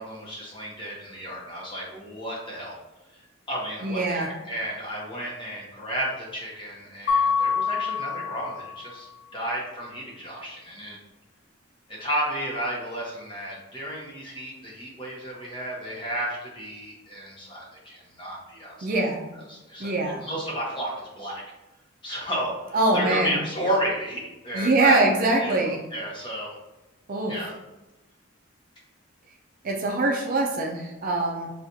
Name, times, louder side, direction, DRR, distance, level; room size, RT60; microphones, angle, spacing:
voice 1, 0.0-2.8 3.1-9.1 9.3-11.0 11.9-19.0 19.3-21.4 22.0-26.5 27.3-27.5, equal, 25° left, -4 dB, 0.9 m, -32 dB
voice 2, 3.8-4.3 18.8-19.3 19.8-20.3 22.7-23.3 24.5-25.8 27.1-27.3 29.6-31.5, right 2 dB, 40° right, 1 dB, 0.4 m, -23 dB
Mallet percussion, 7.1-8.9, left 6 dB, 60° left, 0.5 m, -25 dB
5.9 x 2.4 x 2.6 m, 1.0 s
head